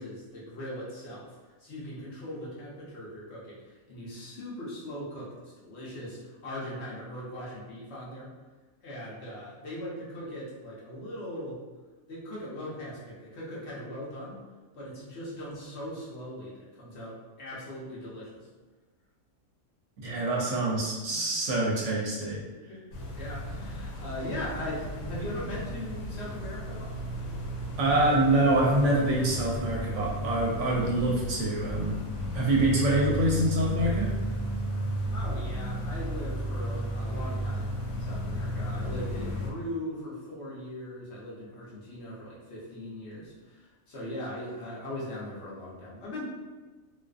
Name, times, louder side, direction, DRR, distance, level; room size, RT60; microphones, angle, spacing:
voice 1, 0.0-3.6 3.9-8.3 8.8-11.6 12.1-14.4 14.8-18.5 21.1-21.4 22.7-22.8 23.1-26.9 35.1-46.2, left 1 dB, 60° left, -6 dB, 0.9 m, -39 dB
voice 2, 20.0-22.4 27.8-32.0 32.3-34.1, right 1 dB, 70° right, -3 dB, 0.8 m, -25 dB
sound 1, 22.9-39.5, right 1 dB, 85° left, 1.0 m, -34 dB
2.4 x 2.4 x 2.3 m, 1.3 s
omnidirectional pair, 1.4 m